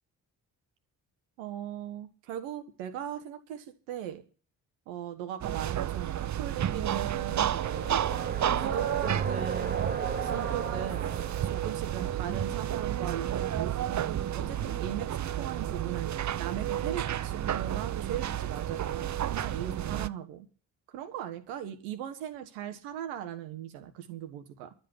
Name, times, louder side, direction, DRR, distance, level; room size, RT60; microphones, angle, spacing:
voice 1, 1.4-4.2 4.9-7.9 8.5-9.8 10.2-11.1 11.4-14.1 14.3-16.1 16.4-20.5 20.9-24.7, right 10 dB, 75° right, 7 dB, 1.6 m, -39 dB
sound 1, 5.4-20.1, right 11 dB, 35° right, 0.7 m, -31 dB
sound 2, 7.2-14.8, right 3 dB, 20° right, 1.6 m, -40 dB
12.5 x 8.3 x 9.9 m, 0.40 s
hypercardioid pair, 40°, 48 cm